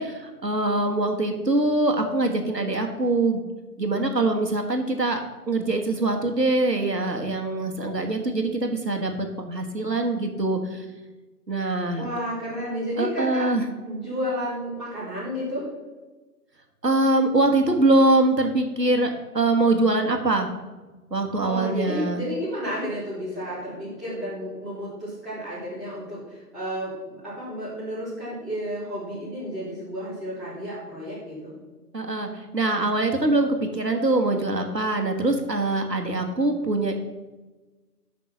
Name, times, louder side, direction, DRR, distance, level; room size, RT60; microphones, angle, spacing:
voice 1, 0.0-3.4 3.8-5.2 5.5-10.8 11.5-12.1 13.0-13.7 16.8-20.5 21.1-22.2 31.9-37.0, right 2 dB, 90° right, 4 dB, 1.6 m, -23 dB
voice 2, 11.9-13.5 13.8-15.6 21.3-31.6, equal, ahead, -16 dB, 3.8 m, -32 dB
9.4 x 6.0 x 6.0 m, 1.2 s
figure-of-eight pair, 150°, 48 cm